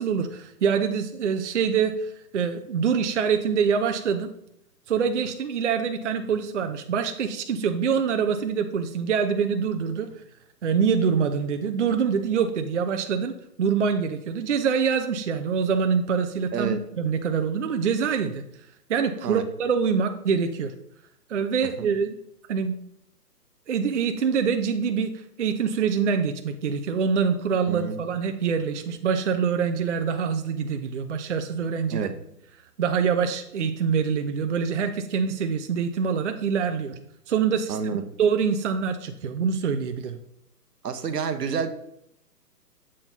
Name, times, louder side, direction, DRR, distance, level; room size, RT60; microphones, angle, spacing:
voice 1, 0.0-4.3 4.9-10.1 10.6-18.4 18.9-20.7 21.3-22.1 22.5-22.8 23.7-25.1 25.4-32.1 32.8-37.0 37.3-37.8 38.2-40.2, right 6 dB, 50° right, 7 dB, 0.5 m, -25 dB
voice 2, 27.7-28.0 31.9-32.1 37.7-38.0 40.8-41.7, right 6 dB, 75° right, 10 dB, 0.9 m, -28 dB
7.4 x 4.3 x 4.0 m, 0.75 s
hypercardioid pair, 145°, 49 cm